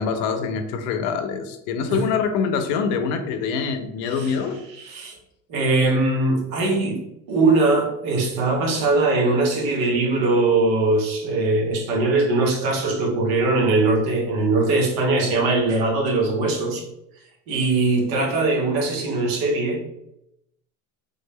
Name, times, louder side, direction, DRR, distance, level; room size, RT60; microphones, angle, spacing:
voice 1, 0.0-4.6, left 6 dB, 85° left, 8 dB, 0.6 m, -25 dB
voice 2, 4.8-5.2 5.5-7.0 7.3-16.8 17.5-19.9, right 3 dB, 65° right, 2 dB, 1.0 m, -21 dB
3.6 x 2.1 x 3.4 m, 0.82 s
cardioid pair, 135°, 38 cm